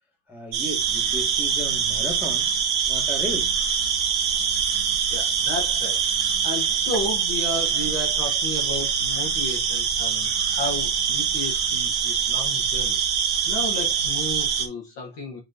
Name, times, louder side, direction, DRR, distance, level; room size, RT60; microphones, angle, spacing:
voice 1, 0.3-2.5 2.8-3.5, equal, ahead, 0.6 m, -34 dB
sound 1, 0.5-14.7, right 7 dB, 55° right, 1.4 m, -24 dB
voice 2, 5.1-13.0 13.4-15.4, left 2 dB, 50° left, 1.6 m, -33 dB
9.2 x 4.2 x 2.6 m
omnidirectional pair, 3.4 m